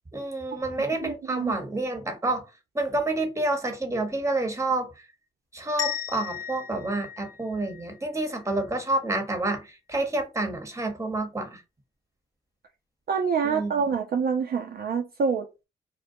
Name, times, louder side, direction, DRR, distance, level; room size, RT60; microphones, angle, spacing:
voice 1, 0.1-2.4 2.7-4.9 5.5-11.6 13.4-13.7, right 2 dB, 15° right, 0.9 m, -28 dB
voice 2, 1.0-1.5 13.1-15.5, right 6 dB, 50° right, 0.4 m, -26 dB
sound 1, 5.8-8.6, left 9 dB, 20° left, 0.6 m, -36 dB
2.3 x 2.1 x 2.6 m
supercardioid pair, 45°, 20 cm